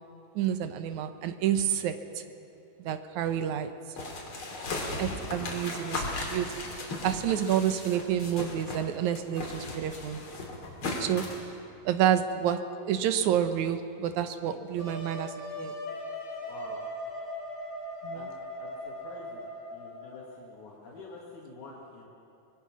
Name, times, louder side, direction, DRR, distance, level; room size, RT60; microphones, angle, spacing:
voice 1, 0.4-2.2 2.8-3.7 5.0-6.5 6.8-10.2 11.0-11.3 11.9-12.6 12.9-15.7 18.0-18.3, right 10 dB, 80° right, 10 dB, 2.4 m, -29 dB
sound 1, 4.0-8.9 9.1-11.4, left 2 dB, 45° left, 3.4 m, -36 dB
Wind instrument woodwind instrument, 14.8-20.3, left 1 dB, 25° left, 4.3 m, -39 dB
voice 2, 16.4-16.8 18.1-19.5 19.7-22.1, left 3 dB, 80° left, -4 dB, 3.6 m, -47 dB
24.5 x 20.0 x 6.2 m, 3.0 s
omnidirectional pair, 3.3 m